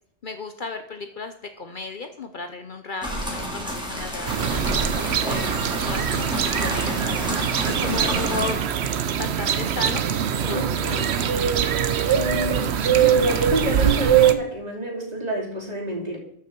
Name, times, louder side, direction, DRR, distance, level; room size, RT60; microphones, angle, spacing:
voice 1, 0.2-5.5 5.9-7.5 7.8-8.8 9.2-10.1 10.4-12.8, left 4 dB, 50° left, 7 dB, 0.9 m, -35 dB
sound 1, 3.0-8.6, equal, 5° right, 2.4 m, -30 dB
sound 2, 4.3-14.3, right 8 dB, 75° right, 1.0 m, -22 dB
voice 2, 7.6-8.0 10.5-11.0 12.1-16.2, right 2 dB, 35° right, -2 dB, 2.9 m, -28 dB
13.0 x 6.1 x 4.5 m, 0.74 s
omnidirectional pair, 1.1 m